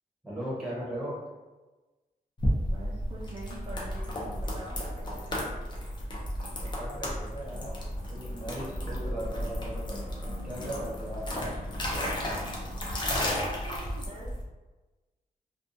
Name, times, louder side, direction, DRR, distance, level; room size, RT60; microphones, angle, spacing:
voice 1, 0.2-1.2 6.6-7.8 8.1-11.5, equal, ahead, -7 dB, 0.8 m, -38 dB
sound 1, 2.4-14.4, equal, 30° left, 0.5 m, -33 dB
voice 2, 2.7-5.5 13.3-14.3, right 1 dB, 40° right, -7 dB, 0.5 m, -44 dB
2.6 x 2.2 x 2.6 m, 1.2 s
wide cardioid pair, 150°, 15 cm